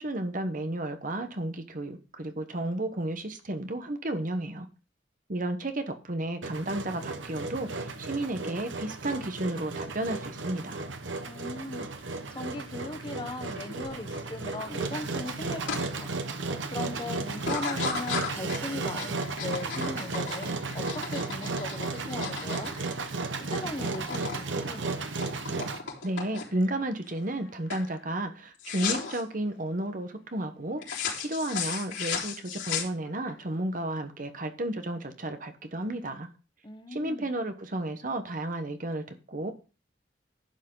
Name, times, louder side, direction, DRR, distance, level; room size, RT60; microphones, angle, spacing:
voice 1, 0.0-4.7 5.3-10.8 26.0-36.3 36.9-39.5, right 1 dB, 45° right, 1.1 m, -32 dB
Engine, 6.4-25.8, right 3 dB, 75° right, 1.2 m, -34 dB
voice 2, 11.3-16.1 16.7-23.1 23.5-24.9 36.6-37.3, left 2 dB, 25° left, 1.1 m, -39 dB
sound 1, 15.7-15.8 16.3-16.7 17.4-23.4 23.7-24.4 24.7-26.7 27.2-27.4 27.7-27.9 28.6-29.2 30.8-33.3, left 6 dB, 75° left, 3.8 m, -35 dB
11.5 x 8.3 x 3.9 m
head